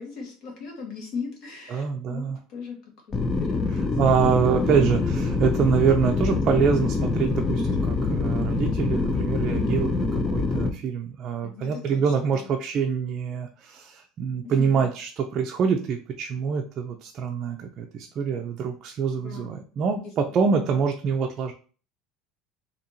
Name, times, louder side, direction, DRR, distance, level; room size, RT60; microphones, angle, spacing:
voice 1, 0.0-2.8 3.1-3.9 4.3-4.9 6.3-6.5 11.4-12.5 14.4-14.8 19.2-19.5, left 5 dB, 55° left, 0 dB, 1.5 m, -38 dB
voice 2, 1.7-2.4 3.7-21.5, right 6 dB, 40° right, 3 dB, 0.4 m, -25 dB
sound 1, 3.1-10.7, left 3 dB, 20° left, 0.4 m, -25 dB
4.3 x 2.8 x 2.7 m, 0.39 s
supercardioid pair, 135°, 0 cm